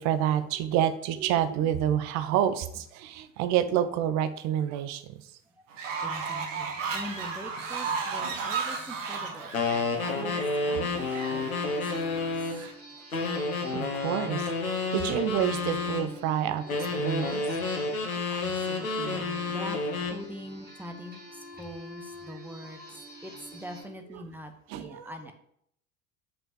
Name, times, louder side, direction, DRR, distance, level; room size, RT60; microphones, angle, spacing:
voice 1, 0.0-5.2 8.2-8.4 10.7-11.3 13.7-17.7 18.9-19.1 24.1-24.2 24.7-25.1, right 10 dB, 40° right, 12 dB, 0.7 m, -29 dB
Fowl, 5.7-12.7, right 5 dB, 60° right, 1.5 m, -35 dB
voice 2, 6.0-9.5 10.1-12.3 18.3-19.8 20.1-22.8 23.2-24.5 24.8-25.3, equal, 5° right, 5 dB, 1.0 m, -43 dB
sound 1, 9.5-12.6 13.1-16.1 16.7-20.2, left 3 dB, 80° left, 1.5 m, -30 dB
sound 2, 10.5-23.8, right 1 dB, 20° right, 2.0 m, -47 dB
5.6 x 5.4 x 6.4 m, 0.72 s
figure-of-eight pair, 75°, 42 cm